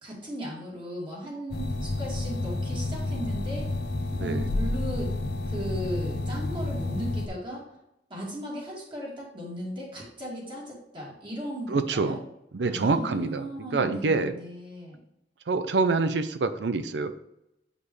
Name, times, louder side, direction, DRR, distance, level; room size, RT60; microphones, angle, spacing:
voice 1, 0.0-3.7 4.2-5.1 5.5-7.6 8.1-12.2 12.7-15.0, equal, 30° right, -4 dB, 2.4 m, -37 dB
sound 1, 1.5-7.3, left 2 dB, 70° left, 0.8 m, -30 dB
voice 2, 4.1-4.5 11.7-12.2 12.5-13.5 13.7-14.3 15.5-17.1, right 3 dB, 80° right, 11 dB, 0.5 m, -26 dB
8.3 x 5.3 x 3.2 m, 0.85 s
head